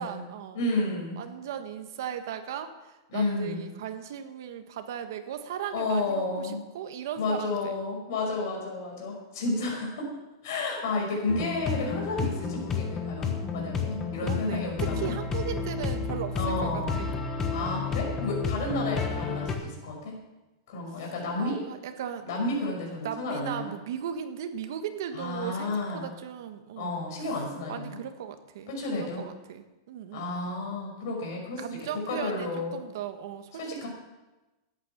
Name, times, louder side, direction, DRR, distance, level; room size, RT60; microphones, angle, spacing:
voice 1, 0.0-0.6 1.2-7.8 14.2-17.1 21.0-21.1 21.4-22.3 23.0-27.0 27.7-30.8 31.6-33.9, right 9 dB, 60° right, 8 dB, 1.4 m, -37 dB
voice 2, 0.5-1.2 3.1-3.6 5.7-6.6 7.2-10.1 10.4-15.1 16.3-17.0 17.5-20.1 20.7-21.6 22.2-23.7 25.1-26.1 26.8-28.0 28.7-29.3 30.1-31.6 32.1-32.8 33.5-33.9, left 2 dB, 55° left, -1 dB, 5.6 m, -31 dB
sound 1, 11.3-19.6, left 5 dB, 15° left, 1.2 m, -31 dB
13.5 x 9.9 x 6.0 m, 1.1 s
supercardioid pair, 170°, 2 cm